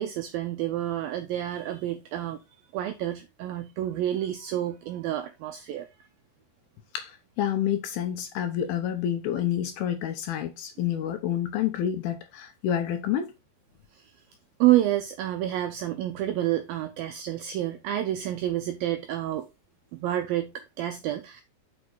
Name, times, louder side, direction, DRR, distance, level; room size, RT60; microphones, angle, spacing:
voice 1, 0.0-2.4 2.7-5.9 13.9-14.1 14.6-19.5 19.9-21.4, right 13 dB, 85° right, 2.1 m, -28 dB
voice 2, 6.9-13.3, left 10 dB, 75° left, 2.4 m, -28 dB
6.5 x 6.0 x 4.0 m
omnidirectional pair, 4.9 m